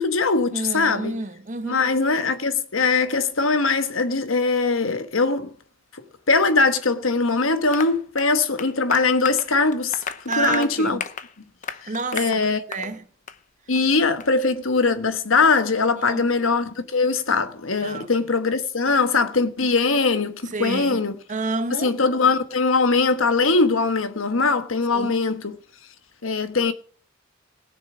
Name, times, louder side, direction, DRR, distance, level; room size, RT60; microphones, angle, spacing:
voice 1, 0.0-1.2 1.6-5.5 5.9-10.0 10.4-11.0 12.1-12.9 13.7-21.2 21.8-25.6 26.2-26.7, left 4 dB, 80° left, 1.3 m, -21 dB
voice 2, 0.5-1.9 10.3-11.0 11.9-12.4 12.7-13.0 15.9-16.3 17.8-18.3 20.4-22.0 24.9-25.2, right 3 dB, 40° right, 1.0 m, -30 dB
Applause, 7.7-13.0 13.3-13.4 13.8-13.9 14.2-14.3, left 6 dB, 40° left, 0.8 m, -35 dB
18.5 x 6.8 x 6.0 m
head